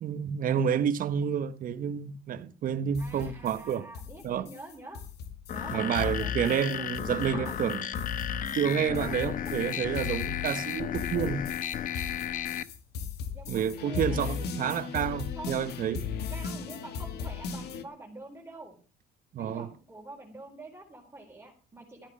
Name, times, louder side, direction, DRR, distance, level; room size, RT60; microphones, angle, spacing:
voice 1, 0.0-3.9 4.2-4.5 5.7-7.9 8.5-11.4 13.5-16.0 19.3-19.7, right 8 dB, 55° right, 1.3 m, -29 dB
sound 1, 3.0-17.8, left 6 dB, 75° left, 2.1 m, -37 dB
voice 2, 3.0-5.0 5.5-6.9 7.3-7.6 9.1-9.3 13.3-14.3 15.4-15.7 16.3-18.7 19.4-22.1, right 2 dB, 15° right, 4.4 m, -46 dB
sound 2, 5.5-12.6, left 9 dB, 50° left, 1.1 m, -34 dB
14.0 x 9.8 x 6.4 m
cardioid pair, 110°, 17 cm